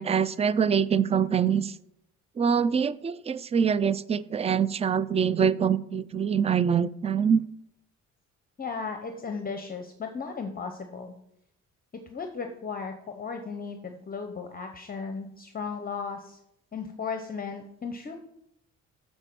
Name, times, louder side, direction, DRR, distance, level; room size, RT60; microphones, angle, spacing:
voice 1, 0.0-1.7 2.4-7.4, right 7 dB, 20° right, 18 dB, 0.3 m, -24 dB
voice 2, 8.6-11.1 12.1-16.4 16.7-18.2, left 5 dB, 30° left, 6 dB, 0.8 m, -35 dB
7.4 x 4.4 x 6.7 m, 0.77 s
cardioid pair, 90°, 30 cm